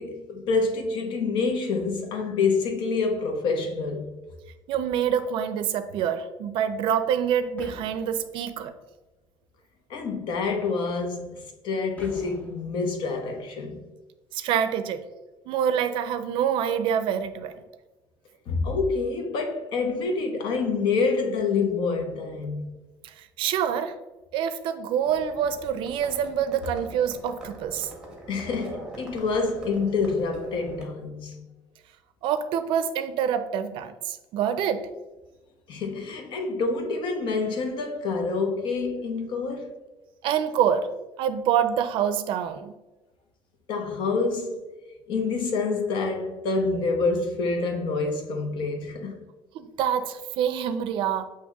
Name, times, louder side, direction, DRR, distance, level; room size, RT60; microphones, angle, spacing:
voice 1, 0.0-4.1 9.9-13.9 18.5-22.7 28.3-31.5 35.7-39.7 43.7-44.6 45.1-49.2, left 4 dB, 65° left, 0.8 m, -27 dB
voice 2, 4.7-8.7 14.3-15.0 15.5-17.6 23.0-24.0 24.3-27.9 32.2-34.9 40.2-40.9 41.2-42.8 49.5-51.3, right 8 dB, 70° right, 0.4 m, -26 dB
sound 1, 7.6-8.8 12.0-12.9, left 2 dB, 15° left, 0.6 m, -46 dB
Livestock farm animals working animals, 25.1-30.8, right 1 dB, 10° right, 1.0 m, -43 dB
7.9 x 2.9 x 2.3 m
cardioid pair, 140°, 9 cm